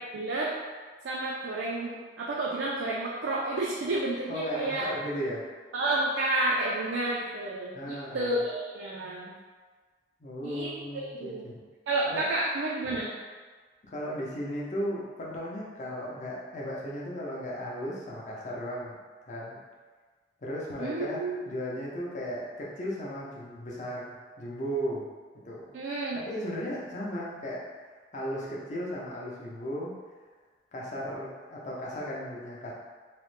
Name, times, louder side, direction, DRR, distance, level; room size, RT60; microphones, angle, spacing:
voice 1, 0.1-0.5 1.0-4.9 5.7-9.3 10.4-11.6 11.9-13.1 20.8-21.4 25.7-26.2, right 2 dB, 90° right, -4 dB, 0.4 m, -30 dB
voice 2, 4.3-5.5 7.7-8.3 10.2-11.6 12.1-12.3 12.8-13.0 13.9-19.0 19.3-19.6 20.4-25.1 25.4-25.6 26.1-27.6 28.1-29.9 30.7-32.7, equal, 45° left, -5 dB, 0.6 m, -35 dB
3.1 x 2.1 x 3.1 m, 1.5 s
head